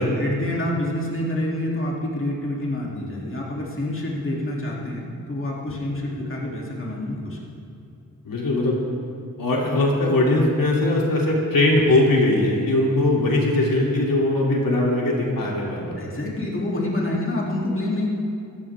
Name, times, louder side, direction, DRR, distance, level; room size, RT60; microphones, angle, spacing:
voice 1, 0.0-7.4 15.9-18.1, left 1 dB, 35° left, -4 dB, 3.1 m, -27 dB
voice 2, 8.2-8.8 9.4-16.0, left 2 dB, 70° left, -3 dB, 3.1 m, -20 dB
27.5 x 14.0 x 3.7 m, 2.7 s
wide cardioid pair, 105°, 35 cm